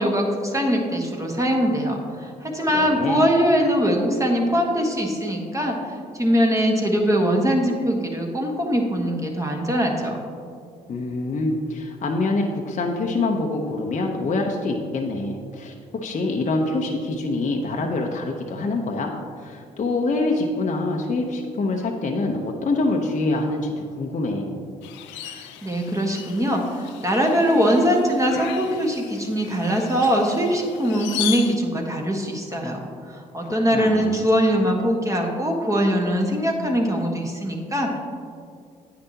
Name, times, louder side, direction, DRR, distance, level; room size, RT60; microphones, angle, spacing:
voice 1, 0.0-5.8 6.1-10.2 25.2-38.0, equal, 15° right, 0 dB, 1.5 m, -22 dB
voice 2, 2.7-3.2 10.9-15.7 16.0-24.6 33.4-34.2, left 2 dB, 40° left, 1 dB, 0.9 m, -25 dB
sound 1, 24.8-31.6, left 11 dB, 70° left, 0.5 m, -36 dB
9.7 x 8.5 x 2.9 m, 2.3 s
hypercardioid pair, 45°, 20 cm